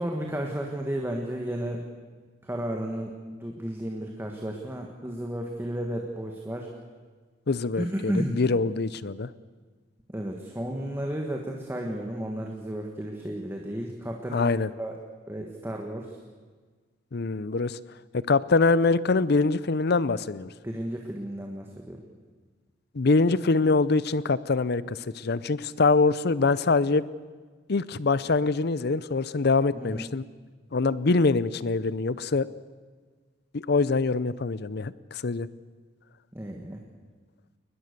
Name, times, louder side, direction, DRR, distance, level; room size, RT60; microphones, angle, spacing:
voice 1, 0.0-1.8 2.4-6.7 7.8-8.4 10.1-15.0 15.3-16.2 20.6-22.0 29.7-30.1 36.3-36.8, right 1 dB, 15° right, 1 dB, 1.6 m, -33 dB
voice 2, 7.5-9.3 14.3-14.7 17.1-17.8 18.1-20.5 22.9-27.0 27.7-30.2 30.7-32.5 33.5-35.5, left 3 dB, 60° left, 18 dB, 0.6 m, -24 dB
22.0 x 20.5 x 6.8 m, 1.5 s
head